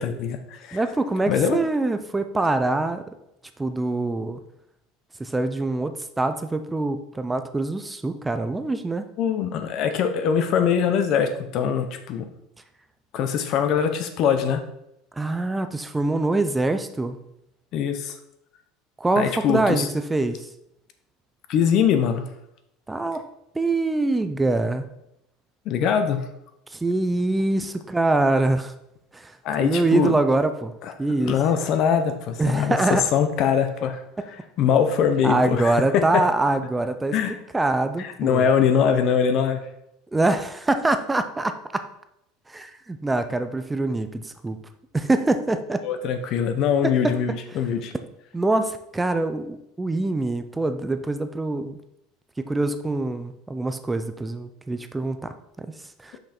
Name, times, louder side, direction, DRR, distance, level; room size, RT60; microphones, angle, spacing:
voice 1, 0.0-0.8 1.3-1.7 9.2-12.3 13.1-14.6 17.7-18.2 19.2-19.9 21.5-22.3 25.7-26.2 29.4-30.1 30.8-30.9 31.2-34.0 34.6-36.3 37.1-37.4 38.0-39.6 45.8-47.9, left 7 dB, 40° left, 8 dB, 0.7 m, -22 dB
voice 2, 0.7-3.0 3.6-4.4 5.2-9.0 15.2-17.2 19.0-20.5 22.9-23.2 23.6-24.8 26.7-28.7 29.1-30.7 31.0-31.4 32.4-33.0 35.2-37.1 37.5-38.5 40.1-41.8 42.5-44.6 44.9-45.8 46.8-46.9 48.3-51.8 52.4-55.7 56.0-56.2, right 2 dB, 5° right, 9 dB, 0.3 m, -24 dB
6.0 x 5.2 x 4.3 m, 0.82 s
cardioid pair, 175°, 0 cm